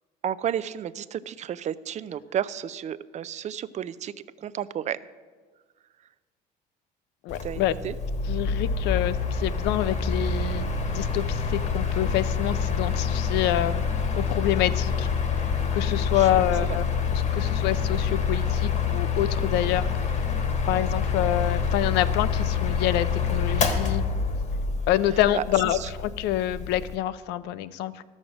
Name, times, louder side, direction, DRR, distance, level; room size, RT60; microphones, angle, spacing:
voice 1, 0.2-4.1 4.4-5.0 7.4-7.9 16.1-16.8 25.3-25.4 25.8-25.9, right 10 dB, 45° right, 16 dB, 0.4 m, -32 dB
voice 2, 7.2-7.7 8.3-13.9 14.1-15.1 15.7-16.8 17.1-20.3 20.7-24.0 24.9-28.0, left 13 dB, 90° left, 15 dB, 0.5 m, -27 dB
Mechanical fan, 7.3-26.9, left 5 dB, 45° left, 1.2 m, -27 dB
13.0 x 6.3 x 6.2 m, 1.5 s
cardioid pair, 110°, 17 cm